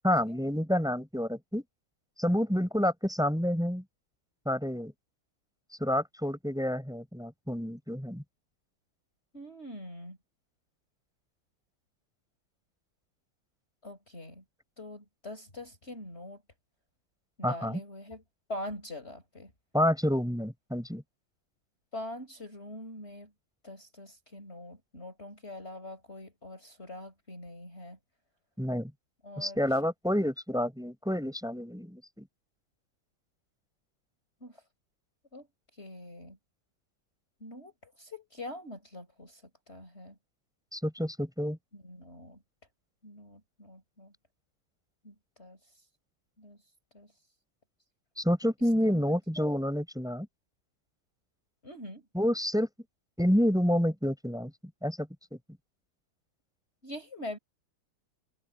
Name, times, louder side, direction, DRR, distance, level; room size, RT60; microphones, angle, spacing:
voice 1, 0.0-1.6 2.2-3.8 4.5-4.9 5.8-8.2 17.4-17.8 19.7-21.0 28.6-28.9 29.4-32.3 40.7-41.6 48.2-50.3 52.1-52.7 53.2-54.5 54.8-55.1, equal, ahead, 6.7 m, -28 dB
voice 2, 9.3-10.2 13.8-14.4 14.8-16.4 17.4-18.2 18.5-19.5 21.9-23.3 23.6-28.0 29.2-29.6 34.4-34.5 35.3-35.5 35.8-36.4 37.4-39.4 39.7-40.1 41.7-42.4 43.0-44.1 45.0-45.6 46.4-46.6 46.9-47.1 48.9-49.0 49.4-49.5 51.6-52.0 56.8-57.4, left 1 dB, 30° left, 5.4 m, -43 dB
omnidirectional pair, 2.4 m